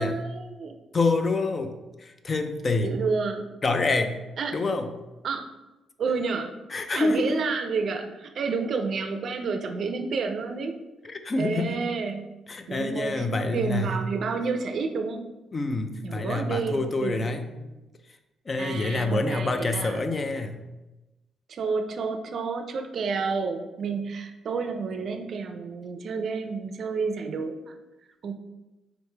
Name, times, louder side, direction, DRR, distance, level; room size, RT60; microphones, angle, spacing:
voice 1, 0.0-0.8 2.8-3.5 4.4-4.6 5.2-5.5 6.0-6.6 6.9-10.7 11.4-12.3 12.7-15.3 16.0-17.2 17.5-17.8 18.6-20.0 21.5-27.8 28.2-28.3, right 4 dB, 55° right, 6 dB, 0.4 m, -30 dB
voice 2, 0.9-2.9 3.6-4.2 4.5-4.9 6.7-7.4 11.0-11.8 12.5-14.1 15.5-17.4 18.5-20.6, left 3 dB, 35° left, 7 dB, 0.4 m, -27 dB
4.1 x 3.1 x 3.3 m, 1.0 s
cardioid pair, 90°, 0 cm